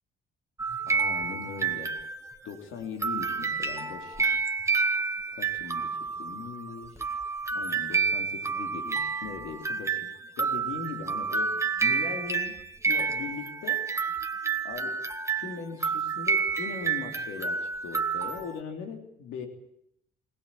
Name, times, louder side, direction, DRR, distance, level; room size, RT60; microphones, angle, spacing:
sound 1, 0.6-2.5 3.0-18.6, right 5 dB, 15° right, 1.8 m, -29 dB
voice 1, 0.9-2.0 2.4-4.3 5.3-7.0 7.5-10.1 10.4-12.6 12.8-13.9 14.6-15.1 15.4-19.5, left 6 dB, 90° left, 5 dB, 3.4 m, -40 dB
20.5 x 19.5 x 8.5 m, 0.72 s
cardioid pair, 90°, 20 cm